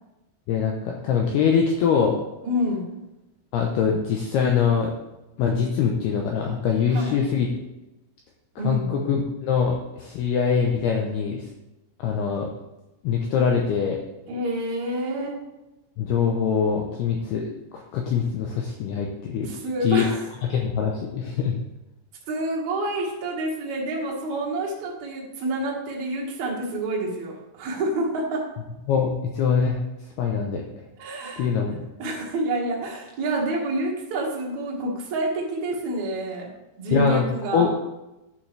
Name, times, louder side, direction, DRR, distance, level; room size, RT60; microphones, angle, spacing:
voice 1, 0.5-2.2 3.5-4.9 5.4-7.5 8.6-11.4 12.0-12.5 13.0-14.0 16.0-19.5 19.8-20.0 20.5-21.6 28.9-29.8 30.2-30.6 31.4-31.8 36.9-37.3 37.5-37.7, left 6 dB, 85° left, 1 dB, 2.2 m, -23 dB
voice 2, 2.4-2.9 6.9-7.2 8.6-8.9 14.3-15.4 19.4-20.2 22.3-28.5 30.2-30.4 31.0-31.5 32.0-36.5 36.8-37.7, right 1 dB, 55° right, -2 dB, 2.2 m, -28 dB
11.5 x 7.3 x 3.3 m, 0.98 s
omnidirectional pair, 5.7 m